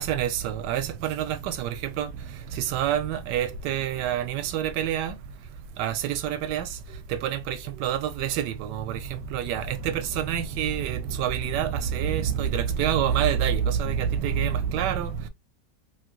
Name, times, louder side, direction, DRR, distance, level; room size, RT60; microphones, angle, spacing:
voice 1, 0.0-15.3, right 9 dB, 75° right, 1.1 m, -27 dB
3.2 x 2.8 x 2.3 m
omnidirectional pair, 2.0 m